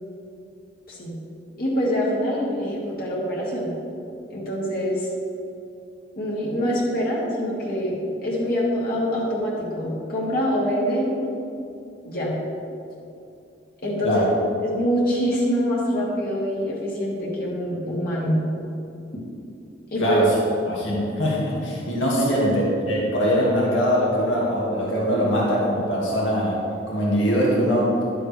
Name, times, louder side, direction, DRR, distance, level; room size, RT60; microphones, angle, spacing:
voice 1, 1.6-3.7 4.3-5.1 6.2-11.1 12.0-12.3 13.8-14.3 14.6-18.4 19.9-20.2 22.3-22.4, equal, 50° left, -5 dB, 2.0 m, -25 dB
voice 2, 20.0-20.4 20.7-26.6 26.9-27.9, equal, 85° left, -5 dB, 2.1 m, -22 dB
11.5 x 7.6 x 3.4 m, 2.6 s
head